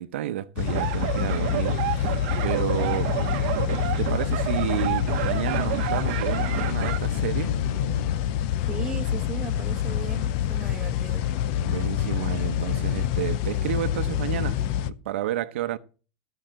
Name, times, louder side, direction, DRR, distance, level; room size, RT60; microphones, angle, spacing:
voice 1, 0.0-3.1 3.5-3.7 4.0-7.5 11.6-15.8, right 12 dB, 70° right, 0.8 m, -31 dB
sound 1, 0.6-14.9, left 10 dB, 40° left, 0.7 m, -27 dB
sound 2, 0.7-7.0, right 15 dB, 45° right, 1.0 m, -30 dB
sound 3, 3.2-6.0 6.3-10.9 11.2-13.1, left 5 dB, 75° left, 1.1 m, -36 dB
voice 2, 8.7-11.3, right 7 dB, 10° right, 1.4 m, -37 dB
14.5 x 5.8 x 7.6 m
supercardioid pair, 180°, 7 cm